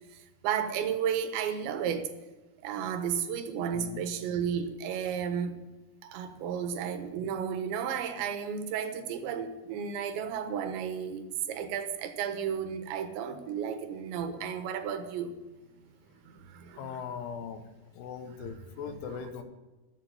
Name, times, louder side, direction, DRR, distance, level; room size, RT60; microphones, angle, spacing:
voice 1, 0.1-2.1 2.6-5.6 6.0-15.3 16.2-16.8 18.9-19.2, right 8 dB, 85° right, 8 dB, 3.5 m, -33 dB
voice 2, 16.7-19.4, left 7 dB, 75° left, 8 dB, 3.0 m, -40 dB
13.5 x 8.4 x 6.8 m, 1.2 s
omnidirectional pair, 5.1 m